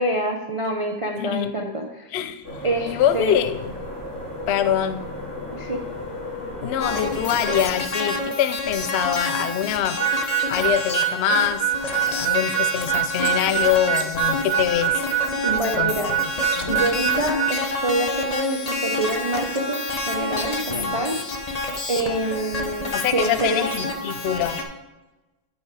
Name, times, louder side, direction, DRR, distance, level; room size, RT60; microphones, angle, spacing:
voice 1, 0.0-2.2 2.6-3.3 5.6-5.8 15.4-16.1 16.7-21.2 21.9-23.6, right 1 dB, 55° right, 2 dB, 0.3 m, -26 dB
voice 2, 1.2-1.5 2.1-2.4 2.9-3.7 4.5-5.0 6.6-10.0 10.5-15.0 15.8-16.3 16.6-16.7 20.7-21.0 22.9-24.6, left 10 dB, 85° left, 12 dB, 0.5 m, -24 dB
sound 1, 2.4-7.6, left 1 dB, 20° left, 2.9 m, -34 dB
sound 2, 6.8-24.6, left 2 dB, 35° left, 0.6 m, -28 dB
Harmonica, 10.0-17.6, right 11 dB, 90° right, 1.2 m, -24 dB
9.2 x 5.4 x 4.8 m, 1.1 s
omnidirectional pair, 1.8 m